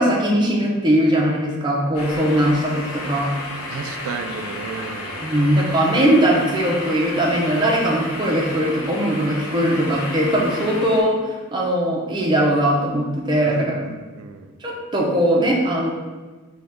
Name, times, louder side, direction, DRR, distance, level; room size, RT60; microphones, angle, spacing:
voice 1, 0.0-3.3 5.2-13.8 14.6-15.9, right 1 dB, 20° right, -2 dB, 0.6 m, -20 dB
sound 1, 1.9-11.0, left 2 dB, 85° left, 0.7 m, -32 dB
voice 2, 3.7-5.3 13.5-14.5, right 5 dB, 80° right, 7 dB, 0.3 m, -33 dB
3.9 x 2.3 x 3.5 m, 1.3 s
head